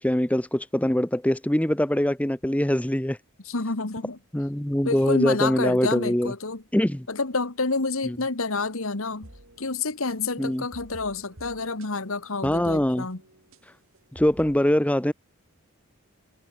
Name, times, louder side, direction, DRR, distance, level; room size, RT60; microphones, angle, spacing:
voice 1, 0.0-3.2 4.3-6.3 6.7-7.1 8.1-8.2 10.4-10.6 12.4-13.1 14.1-15.1, left 1 dB, 5° left, 0.6 m, -23 dB
voice 2, 3.4-4.2 4.8-6.6 7.1-9.3 9.6-13.2, left 3 dB, 70° left, 1.7 m, -28 dB
sound 1, 8.8-14.6, right 1 dB, 65° right, 7.1 m, -50 dB
head